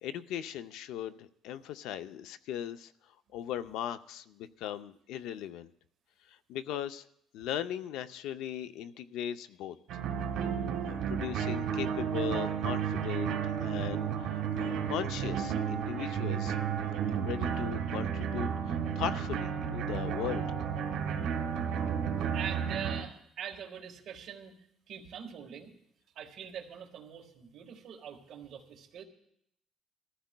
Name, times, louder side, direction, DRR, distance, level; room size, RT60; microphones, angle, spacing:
voice 1, 0.0-2.9 3.3-5.7 6.3-7.0 7.3-9.8 10.8-16.6 17.1-20.5, left 10 dB, 85° left, 11 dB, 0.5 m, -38 dB
sound 1, 9.9-23.0, right 7 dB, 75° right, 1.8 m, -32 dB
voice 2, 22.3-24.5 24.9-25.7 26.1-29.0, right 8 dB, 55° right, 1 dB, 1.6 m, -43 dB
22.0 x 14.0 x 2.2 m, 0.73 s
cardioid pair, 175°, 0 cm